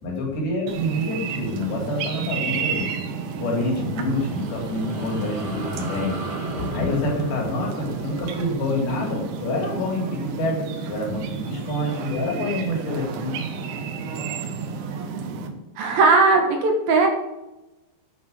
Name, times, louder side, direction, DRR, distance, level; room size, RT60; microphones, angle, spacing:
voice 1, 0.0-2.9 3.4-13.4, left 1 dB, 65° left, -1 dB, 4.9 m, -27 dB
sound 1, 0.7-15.5, right 5 dB, 85° right, 3.3 m, -31 dB
sound 2, 3.7-10.5, right 1 dB, 45° right, 4.6 m, -38 dB
voice 2, 15.8-17.1, right 3 dB, 65° right, 3 dB, 2.9 m, -18 dB
9.5 x 6.4 x 7.1 m, 0.99 s
omnidirectional pair, 4.8 m